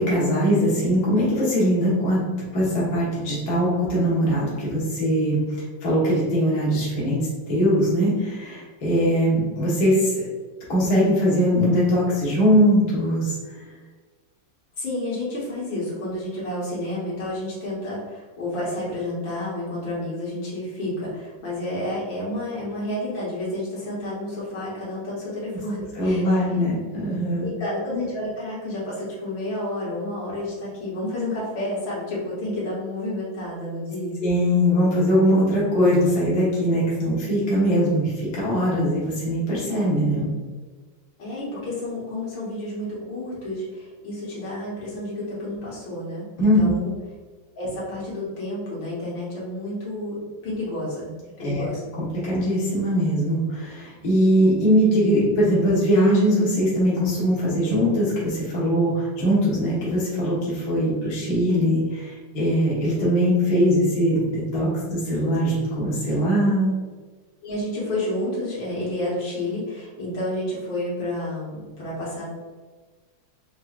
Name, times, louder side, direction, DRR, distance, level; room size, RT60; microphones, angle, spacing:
voice 1, 0.0-2.2 2.5-5.4 5.8-7.2 7.5-10.3 10.7-13.5 25.9-27.5 34.2-40.3 46.4-46.7 51.4-51.7 52.0-66.7, equal, 55° left, -8 dB, 1.7 m, -21 dB
voice 2, 14.8-26.6 27.4-34.2 41.2-46.9 47.6-50.2 50.4-51.8 67.4-72.3, left 1 dB, 80° left, -6 dB, 1.9 m, -30 dB
4.4 x 3.1 x 2.4 m, 1.4 s
omnidirectional pair, 2.1 m